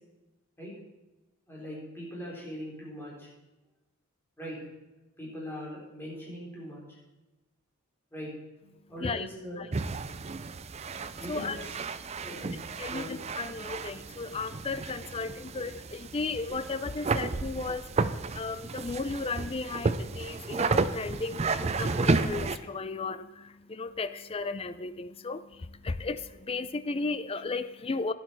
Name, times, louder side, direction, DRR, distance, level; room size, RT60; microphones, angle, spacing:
voice 1, 1.5-3.3 4.4-4.6 5.2-6.8 8.1-8.3 8.9-9.6 11.2-11.8 12.2-12.6 12.9-13.1, equal, 10° left, -6 dB, 4.5 m, -40 dB
sound 1, 9.7-22.6, right 3 dB, 30° right, 0.4 m, -32 dB
voice 2, 11.0-11.6 12.2-12.3 12.8-28.1, left 3 dB, 25° left, 13 dB, 0.4 m, -35 dB
12.0 x 11.0 x 4.6 m, 1.0 s
head